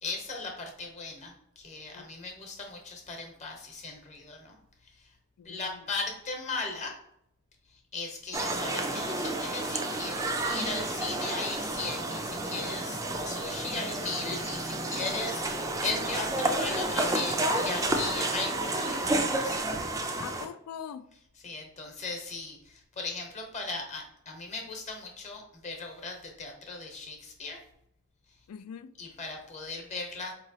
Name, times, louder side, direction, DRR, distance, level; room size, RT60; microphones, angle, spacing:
voice 1, 0.0-4.6 4.9-5.1 5.4-7.0 7.7-19.6 20.2-20.3 21.4-27.6 29.0-30.3, left 3 dB, 30° left, 0.9 m, -37 dB
voice 2, 1.9-2.4 5.4-5.9 20.2-21.1 28.5-28.9, left 7 dB, 80° left, 0.3 m, -43 dB
sound 1, 8.3-20.5, right 2 dB, 15° right, 0.4 m, -31 dB
4.5 x 3.0 x 2.7 m
head